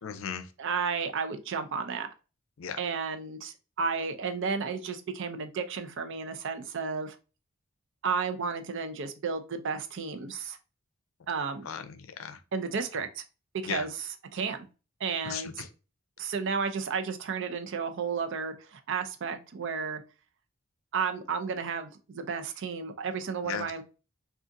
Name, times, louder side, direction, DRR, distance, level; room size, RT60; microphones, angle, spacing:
voice 1, 0.0-0.5 2.6-2.8 11.7-12.4 13.6-13.8 15.2-15.5 23.4-23.7, left 7 dB, 75° left, 0.5 m, -36 dB
voice 2, 0.6-2.1 2.8-7.2 8.0-10.6 11.3-11.6 12.5-13.2 13.5-14.7 15.0-15.7 16.2-20.0 20.9-23.8, right 5 dB, 65° right, 0.5 m, -32 dB
3.6 x 2.4 x 2.6 m
head